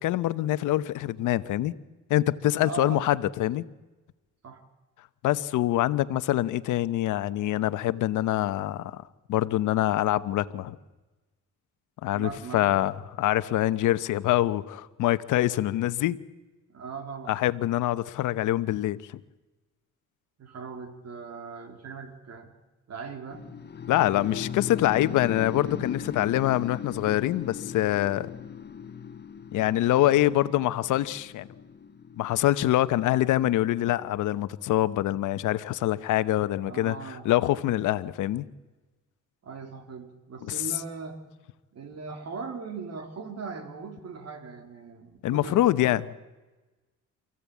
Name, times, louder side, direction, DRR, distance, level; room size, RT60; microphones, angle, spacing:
voice 1, 0.0-1.7 2.1-3.6 5.2-9.0 9.3-10.8 12.0-16.2 17.3-19.0 23.9-28.3 29.5-31.5 32.2-38.4 40.5-40.6 45.2-46.0, left 14 dB, 85° left, 1.0 m, -25 dB
voice 2, 2.6-3.1 4.4-4.6 12.1-12.7 16.7-17.4 20.4-22.5 22.9-23.4 36.6-37.3 39.4-41.2 41.7-46.0, right 5 dB, 55° right, 3.7 m, -39 dB
sound 1, 23.3-33.3, left 7 dB, 35° left, 1.1 m, -38 dB
28.0 x 15.5 x 8.5 m
cardioid pair, 90°, 30 cm